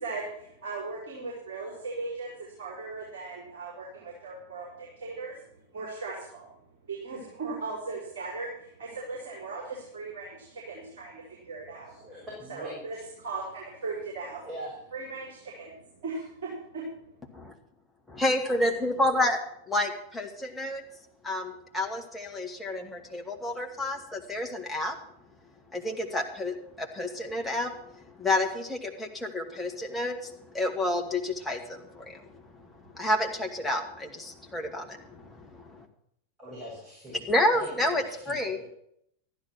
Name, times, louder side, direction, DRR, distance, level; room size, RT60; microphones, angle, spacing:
voice 1, 0.0-5.4 5.7-6.5 6.9-12.0 12.5-14.4 14.9-15.7 16.0-16.1, right 3 dB, 55° right, -4 dB, 5.2 m, -38 dB
voice 2, 11.8-13.0 14.4-14.8 36.4-37.3 37.6-38.6, equal, 20° right, -4 dB, 6.2 m, -43 dB
voice 3, 18.2-19.4 19.7-20.8 21.2-25.0 25.7-27.7 28.2-32.2 32.9-35.9 37.3-38.6, left 1 dB, 5° left, 0 dB, 2.2 m, -29 dB
14.0 x 11.0 x 6.2 m, 0.73 s
figure-of-eight pair, 90°, 0 cm